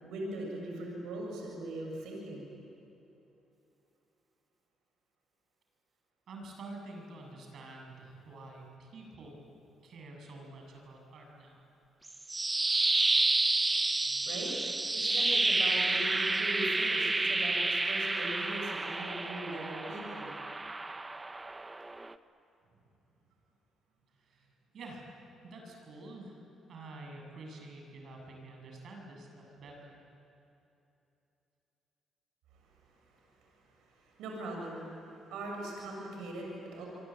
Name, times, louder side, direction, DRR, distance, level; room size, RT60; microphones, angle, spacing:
voice 1, 0.0-2.5 14.1-14.6 14.9-20.3 33.5-36.9, right 1 dB, 90° right, -1 dB, 7.5 m, -40 dB
voice 2, 6.3-9.4 9.8-11.6 22.7-22.8 24.2-24.5 24.7-26.4 26.7-30.1, right 2 dB, 65° right, 1 dB, 7.5 m, -48 dB
sound 1, 12.1-22.1, right 2 dB, 20° right, 1.0 m, -30 dB
27.5 x 23.0 x 9.2 m, 2.9 s
cardioid pair, 90°, 0 cm